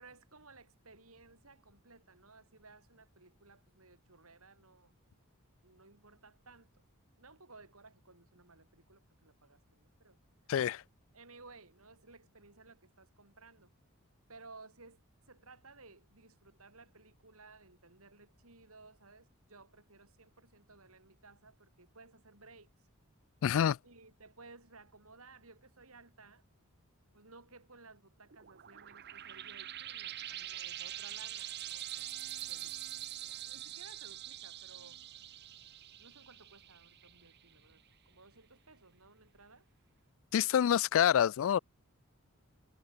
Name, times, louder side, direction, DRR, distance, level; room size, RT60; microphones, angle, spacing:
voice 1, 0.0-4.9 5.6-6.7 7.2-10.2 11.1-13.7 14.3-15.0 15.3-22.7 23.8-26.4 27.1-32.1 32.5-35.0 36.0-39.7, right 3 dB, 75° right, 6.9 m, -58 dB
voice 2, 10.5-10.8 23.4-23.8 40.3-41.6, left 9 dB, 65° left, 0.3 m, -27 dB
sound 1, 28.3-37.5, right 13 dB, 50° right, 0.8 m, -44 dB
head